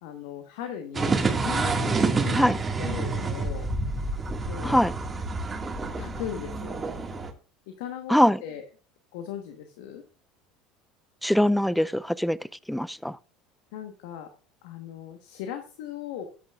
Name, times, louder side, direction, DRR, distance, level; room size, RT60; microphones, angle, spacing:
voice 1, 0.0-3.7 4.4-4.8 6.0-6.8 7.7-8.6 9.1-10.0 13.7-14.3 14.6-16.3, left 9 dB, 70° left, 1.2 m, -38 dB
sound 1, 0.9-7.3, right 3 dB, 25° right, 1.8 m, -28 dB
voice 2, 8.1-8.4 11.2-12.4 12.7-13.2, equal, ahead, 0.4 m, -22 dB
13.0 x 8.7 x 2.4 m
hypercardioid pair, 75°, 0 cm